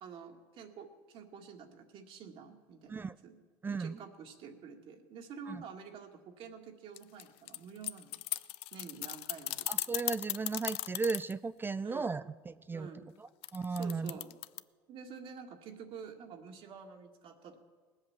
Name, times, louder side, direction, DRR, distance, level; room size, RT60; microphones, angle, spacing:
voice 1, 0.0-3.4 3.7-8.2 8.7-9.7 11.8-12.2 12.7-13.2 13.7-14.4 14.9-17.6, right 6 dB, 60° right, 3 dB, 1.8 m, -49 dB
voice 2, 3.6-4.0 5.5-5.6 9.7-12.9 13.5-14.1, right 4 dB, 20° right, 14 dB, 0.4 m, -35 dB
sound 1, 7.0-11.3 13.4-14.6, left 18 dB, 65° left, 0.4 m, -36 dB
19.0 x 8.0 x 7.1 m, 1.5 s
supercardioid pair, 80°, 11 cm